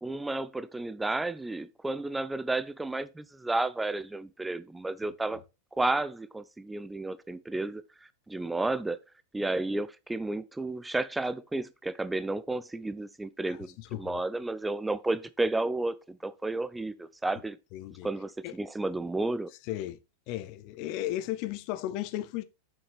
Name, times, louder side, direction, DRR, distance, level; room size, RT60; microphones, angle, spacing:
voice 1, 0.0-5.4 5.8-7.8 8.3-9.0 9.3-17.6 18.0-19.5, right 2 dB, 5° right, 0.5 m, -32 dB
voice 2, 13.8-14.2 17.7-18.1 18.4-18.6 19.7-20.0 20.3-22.4, left 14 dB, 45° left, 0.7 m, -35 dB
7.3 x 6.4 x 3.4 m
figure-of-eight pair, 90°, 0 cm